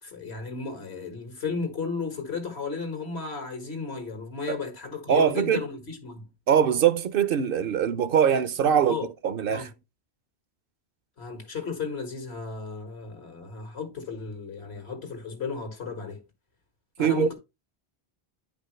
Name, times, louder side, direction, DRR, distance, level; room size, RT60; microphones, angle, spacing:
voice 1, 0.0-6.3 8.6-9.1 9.5-9.7 11.2-16.2 17.0-17.3, left 5 dB, 90° left, 2.0 m, -34 dB
voice 2, 5.1-5.6 6.5-8.9 9.2-9.7 17.0-17.3, right 8 dB, 65° right, 0.8 m, -22 dB
9.4 x 5.2 x 3.1 m
omnidirectional pair, 1.1 m